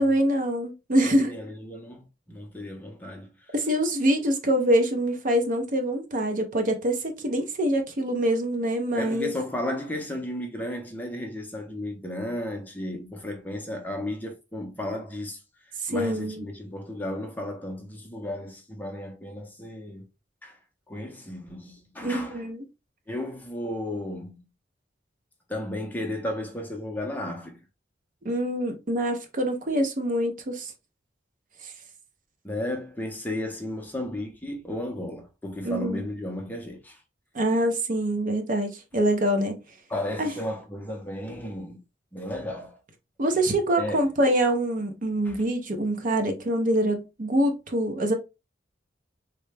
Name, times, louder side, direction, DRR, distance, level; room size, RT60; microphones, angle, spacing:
voice 1, 0.0-1.3 3.5-9.3 15.8-16.5 22.0-22.6 28.2-30.7 31.6-31.7 35.6-36.0 37.3-39.6 40.2-40.3 43.2-48.1, right 1 dB, 45° right, 0.6 m, -25 dB
voice 2, 1.0-3.5 9.0-15.4 15.9-20.1 20.4-20.6 20.9-22.5 23.1-24.4 25.5-27.6 32.4-37.0 39.9-41.8 42.1-42.8 43.8-44.0 45.2-45.5, left 1 dB, 10° left, 0.6 m, -34 dB
3.8 x 2.2 x 3.2 m
head